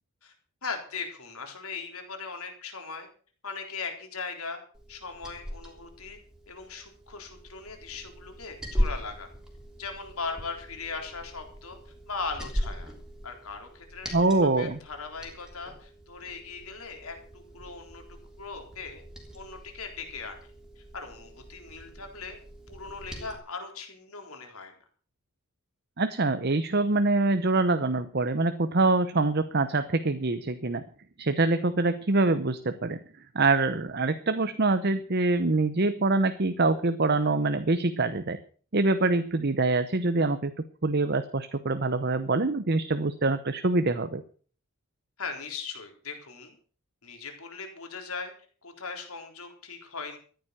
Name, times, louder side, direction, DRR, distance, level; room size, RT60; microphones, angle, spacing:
voice 1, 0.6-3.1 3.4-4.6 4.9-6.2 6.5-9.3 9.8-12.9 13.2-18.0 18.4-19.0 19.3-20.5 20.8-22.4 22.7-24.7 45.2-46.6 47.0-48.3 48.6-50.2, left 4 dB, 75° left, 4 dB, 3.9 m, -39 dB
Liquid, 4.7-23.4, equal, 5° right, 3.3 m, -39 dB
voice 2, 14.1-14.8 26.0-30.8 31.2-33.0 33.3-38.4 38.7-44.2, right 2 dB, 45° right, 10 dB, 0.9 m, -25 dB
14.0 x 10.5 x 6.7 m, 0.43 s
head